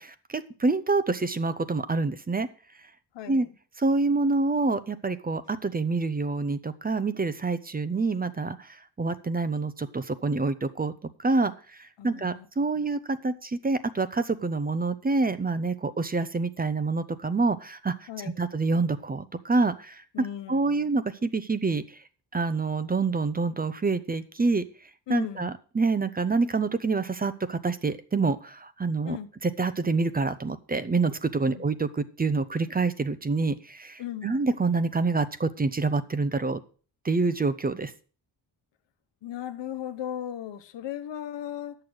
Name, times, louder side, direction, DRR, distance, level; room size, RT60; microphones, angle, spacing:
voice 1, 0.0-2.5 3.3-3.5 3.8-10.9 11.2-17.9 18.4-20.0 20.5-22.0 22.3-24.6 25.1-29.2 29.4-36.6 37.0-37.9, right 3 dB, 20° right, 0.6 m, -27 dB
voice 2, 3.1-3.5 12.0-12.5 12.7-12.9 18.1-18.5 20.1-20.9 25.1-25.5 29.0-29.3 31.5-31.7 34.0-34.4 39.2-41.8, left 10 dB, 85° left, 1.1 m, -37 dB
10.5 x 6.8 x 6.2 m
wide cardioid pair, 125°, 42 cm